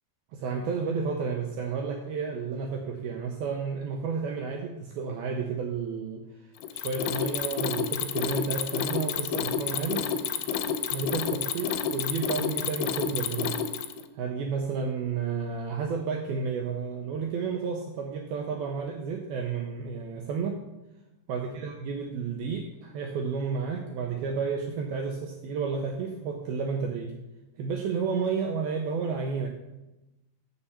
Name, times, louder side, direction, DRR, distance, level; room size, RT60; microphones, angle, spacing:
voice 1, 0.3-6.2 6.7-10.0 10.9-13.6 14.2-20.6 21.3-27.1 27.6-29.5, right 5 dB, 85° right, 3 dB, 2.2 m, -31 dB
Mechanisms, 6.6-14.1, left 8 dB, 85° left, 2.8 m, -29 dB
7.0 x 6.8 x 6.9 m, 1.0 s
omnidirectional pair, 5.2 m